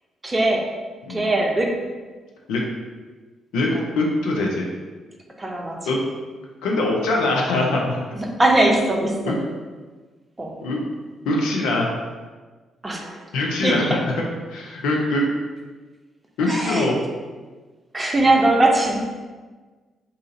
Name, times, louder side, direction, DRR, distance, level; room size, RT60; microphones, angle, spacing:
voice 1, 0.2-0.6 1.1-1.7 5.4-5.8 8.1-9.3 10.4-10.6 12.8-13.2 13.6-14.0 16.4-16.9 17.9-19.0, right 2 dB, 25° right, 0 dB, 0.7 m, -20 dB
voice 2, 3.5-4.7 5.9-6.0 6.6-8.0 9.3-9.4 10.6-10.8 11.3-11.9 13.3-14.0 14.5-15.3 16.4-17.0, left 2 dB, 70° left, -1 dB, 0.5 m, -22 dB
2.7 x 2.4 x 3.8 m, 1.4 s
hypercardioid pair, 40°, 0 cm